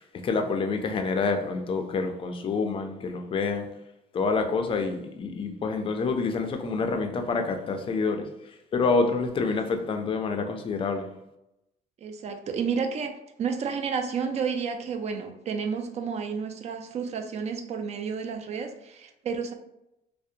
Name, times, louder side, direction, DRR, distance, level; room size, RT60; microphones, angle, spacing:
voice 1, 0.0-3.7 4.1-8.2 8.7-11.1, left 4 dB, 30° left, 5 dB, 0.4 m, -27 dB
voice 2, 12.0-19.5, right 6 dB, 40° right, 6 dB, 0.4 m, -31 dB
2.7 x 2.1 x 2.5 m, 0.87 s
cardioid pair, 110°, 17 cm